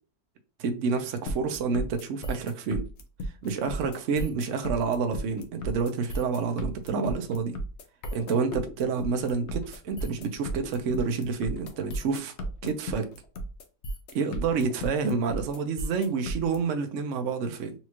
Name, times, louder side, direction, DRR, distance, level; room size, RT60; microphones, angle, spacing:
voice 1, 0.6-2.8 3.4-7.6 8.1-12.3 12.6-13.1 14.1-17.7, right 5 dB, 60° right, 0.9 m, -28 dB
sound 1, 1.3-16.6, equal, 60° left, 0.8 m, -34 dB
4.2 x 2.4 x 2.9 m
omnidirectional pair, 1.6 m